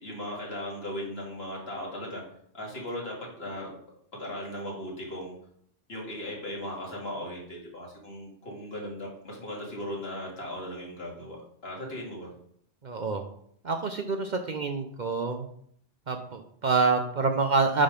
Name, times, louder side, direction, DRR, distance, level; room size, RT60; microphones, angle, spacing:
voice 1, 0.0-2.2 2.5-3.7 4.1-5.3 5.9-11.4 11.6-12.3, left 1 dB, 65° left, -3 dB, 2.6 m, -37 dB
voice 2, 12.8-13.2 13.6-15.5 16.1-17.8, right 4 dB, 50° right, 6 dB, 0.7 m, -27 dB
8.9 x 3.9 x 5.1 m, 0.66 s
omnidirectional pair, 1.1 m